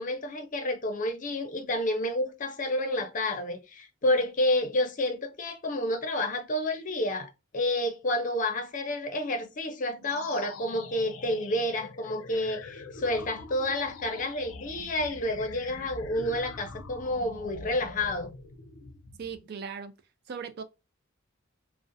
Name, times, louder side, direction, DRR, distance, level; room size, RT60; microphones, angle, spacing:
voice 1, 0.0-18.3, left 1 dB, 40° left, 0.6 m, -29 dB
sound 1, 9.9-19.5, left 4 dB, 90° left, 0.5 m, -44 dB
voice 2, 19.2-19.9 20.3-20.6, right 6 dB, 50° right, 0.4 m, -38 dB
2.4 x 2.1 x 2.6 m
head